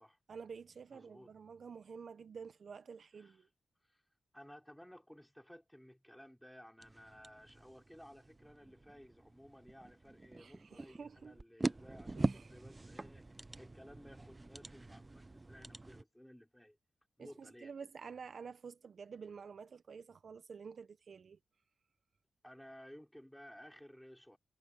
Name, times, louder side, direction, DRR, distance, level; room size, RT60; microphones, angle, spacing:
voice 1, 0.3-3.5 10.4-11.4 12.1-12.6 17.2-21.4, right 6 dB, 55° right, 0.8 m, -50 dB
voice 2, 0.9-1.3 3.2-3.4 3.8-4.0 4.3-13.3 13.6-16.8 17.2-17.7 22.4-24.4, equal, 5° left, 5.8 m, -57 dB
sound 1, 6.8-16.0, right 2 dB, 20° right, 0.8 m, -43 dB
wide cardioid pair, 110°, 0 cm